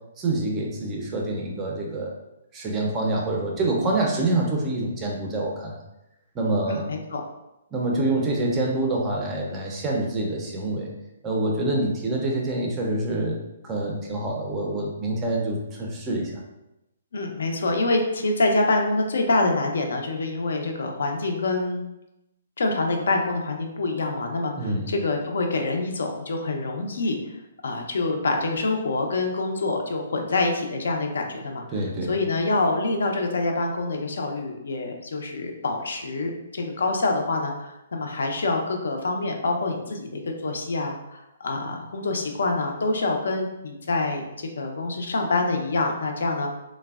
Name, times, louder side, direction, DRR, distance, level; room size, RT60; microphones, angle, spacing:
voice 1, 0.2-2.1 2.5-5.8 6.3-6.9 7.7-10.9 11.2-13.4 13.6-16.4 24.6-24.9 31.7-32.1, right 2 dB, 15° right, -1 dB, 0.4 m, -26 dB
voice 2, 6.6-7.2 17.1-21.8 22.6-27.2 27.6-31.6 32.1-44.3 44.6-46.5, left 2 dB, 80° left, 2 dB, 0.5 m, -26 dB
3.2 x 2.0 x 2.3 m, 0.91 s
hypercardioid pair, 165°, 0 cm